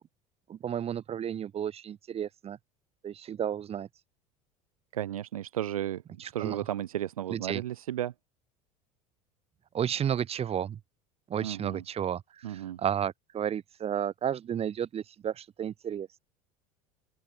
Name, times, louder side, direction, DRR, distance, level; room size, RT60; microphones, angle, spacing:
voice 1, 0.5-2.6 3.0-3.9 6.2-6.6 7.3-7.6 9.7-10.8 11.3-16.2, right 9 dB, 35° right, 2.4 m, -32 dB
voice 2, 4.9-8.1 11.4-11.8 12.4-12.8, right 12 dB, 70° right, 0.7 m, -34 dB
open air
figure-of-eight pair, 70°, 19 cm